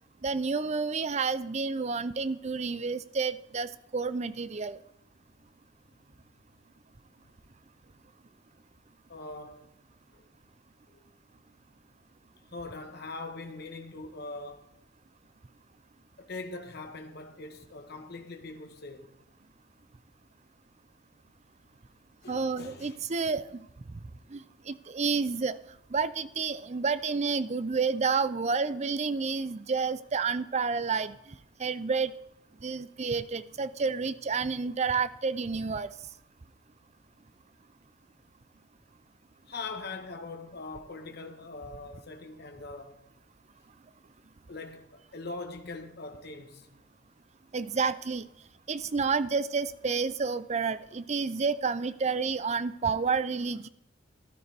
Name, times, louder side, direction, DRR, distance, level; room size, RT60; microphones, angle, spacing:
voice 1, 0.2-4.8 22.3-23.7 24.3-25.6 25.9-31.2 31.6-32.1 32.6-35.9 47.5-48.3 48.7-53.7, right 5 dB, 35° right, 0.5 m, -30 dB
voice 2, 9.1-9.7 10.1-10.2 10.9-11.0 12.5-14.7 16.2-19.1 22.2-23.1 39.5-43.0 44.5-46.7, left 3 dB, 55° left, 1.2 m, -42 dB
13.5 x 12.0 x 3.4 m
head